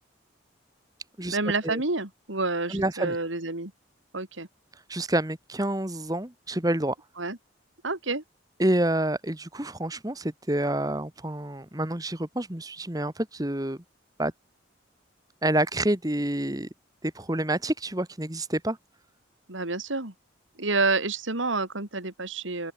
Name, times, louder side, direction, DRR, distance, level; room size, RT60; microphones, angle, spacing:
voice 1, 1.3-3.7 4.1-4.5 7.2-7.4 7.8-8.2 19.5-20.1 20.6-22.7, right 3 dB, 80° right, 3.4 m, -28 dB
voice 2, 2.7-3.2 4.9-7.0 8.6-13.8 14.2-14.3 15.4-16.7 17.0-18.8, right 1 dB, 20° right, 1.6 m, -28 dB
open air
head